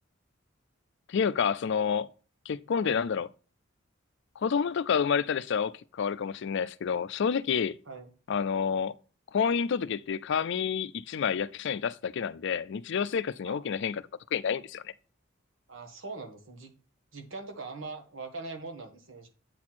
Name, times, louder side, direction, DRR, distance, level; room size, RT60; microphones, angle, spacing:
voice 1, 1.1-2.1 2.5-3.3 4.4-7.8 8.3-8.9 9.3-14.0 14.3-14.9, left 6 dB, 60° left, 0.4 m, -29 dB
voice 2, 15.7-16.7 17.1-19.3, right 3 dB, 75° right, 1.6 m, -41 dB
8.4 x 4.2 x 4.3 m
head